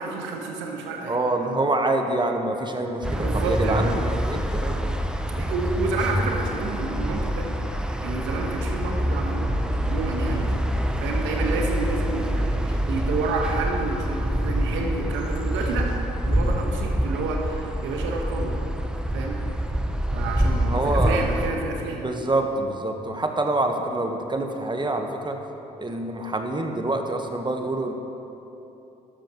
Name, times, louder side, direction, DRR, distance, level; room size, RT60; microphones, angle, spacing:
voice 1, 0.0-1.2 3.0-4.0 5.3-7.5 8.0-9.5 9.8-10.5 11.0-16.0 16.3-18.6 19.1-19.4 20.1-22.0, right 3 dB, 75° right, 1 dB, 1.4 m, -29 dB
voice 2, 1.1-4.9 10.3-10.6 20.6-21.2 22.0-25.4 25.8-27.9, right 2 dB, 25° right, 4 dB, 1.3 m, -26 dB
sound 1, 3.0-21.5, equal, 5° right, 0.8 m, -26 dB
13.0 x 11.5 x 3.1 m, 3.0 s
hypercardioid pair, 50°, 20 cm